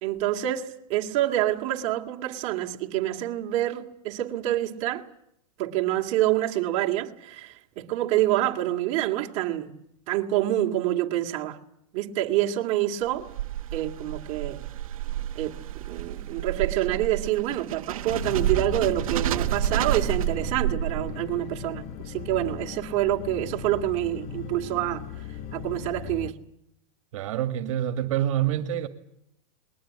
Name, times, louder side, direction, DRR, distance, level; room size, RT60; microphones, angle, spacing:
voice 1, 0.0-5.0 5.6-9.7 10.1-11.6 11.9-13.3 13.7-14.7 15.3-15.6 15.9-25.0 25.5-26.3, right 14 dB, 40° right, 2.5 m, -27 dB
sound 1, 13.0-21.4, right 13 dB, 85° right, 1.0 m, -30 dB
sound 2, 18.1-26.3, left 7 dB, 40° left, 1.3 m, -37 dB
voice 2, 27.1-28.9, right 11 dB, 65° right, 2.0 m, -26 dB
21.5 x 19.0 x 10.0 m
supercardioid pair, 150°, 18 cm